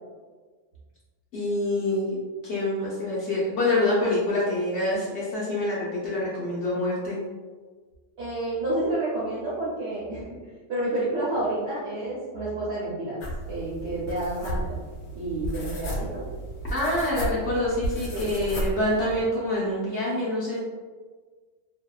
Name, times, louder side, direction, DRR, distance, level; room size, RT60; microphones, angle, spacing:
voice 1, 1.3-2.2 2.4-7.2 16.7-20.6, left 1 dB, 60° left, -7 dB, 0.7 m, -26 dB
voice 2, 8.2-13.2 13.5-14.8 15.1-16.3 18.1-18.3, right 2 dB, 65° right, -8 dB, 0.7 m, -30 dB
sound 1, 13.2-19.2, right 1 dB, 80° left, 1.1 m, -33 dB
2.7 x 2.1 x 2.2 m, 1.5 s
omnidirectional pair, 1.6 m